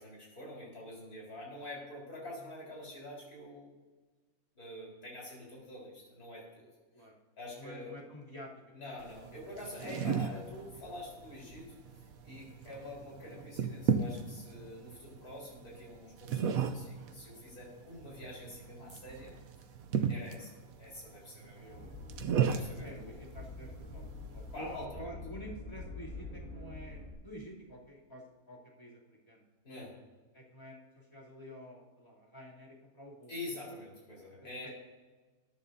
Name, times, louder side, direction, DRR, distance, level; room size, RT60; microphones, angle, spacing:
voice 1, 0.0-3.7 4.6-6.7 7.4-8.0 8.7-19.4 20.1-22.0 22.5-23.2 24.5-25.1 29.6-30.0 33.3-34.7, left 1 dB, 80° left, -4 dB, 4.7 m, -46 dB
voice 2, 7.6-8.5 9.0-9.1 12.6-12.8 14.7-14.9 19.9-20.1 21.4-21.8 22.8-24.0 24.3-29.4 30.3-33.3 34.6-34.7, equal, 20° left, -6 dB, 3.1 m, -49 dB
sound 1, 9.0-24.9, right 7 dB, 70° right, 1.2 m, -36 dB
sound 2, 21.7-27.1, left 2 dB, 35° left, 3.6 m, -46 dB
21.0 x 10.0 x 2.7 m, 1.3 s
omnidirectional pair, 1.6 m